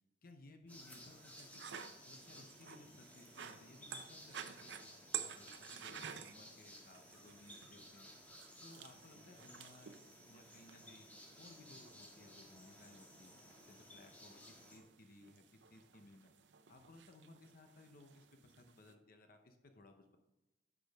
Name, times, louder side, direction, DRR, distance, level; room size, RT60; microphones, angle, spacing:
voice 1, 0.2-1.6 2.1-8.1 8.6-13.3 13.7-16.3 16.7-20.2, left 2 dB, 55° left, 6 dB, 0.8 m, -61 dB
sound 1, 0.7-14.8, left 1 dB, 10° left, 1.5 m, -58 dB
sound 2, 0.7-18.9, right 8 dB, 80° right, 0.7 m, -53 dB
10.0 x 6.2 x 3.5 m, 1.0 s
head